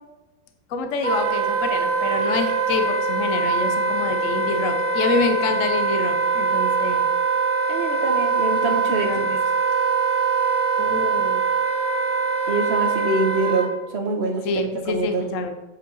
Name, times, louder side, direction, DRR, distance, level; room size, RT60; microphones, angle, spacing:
voice 1, 0.7-7.1 9.0-9.3 10.8-11.4 14.4-15.5, left 4 dB, 50° left, 6 dB, 1.0 m, -26 dB
Wind instrument woodwind instrument, 1.0-13.7, right 4 dB, 25° right, 1.0 m, -22 dB
voice 2, 7.7-9.2 12.5-15.2, right 3 dB, 40° right, 2 dB, 1.3 m, -25 dB
8.4 x 7.3 x 4.1 m, 1.1 s
omnidirectional pair, 2.1 m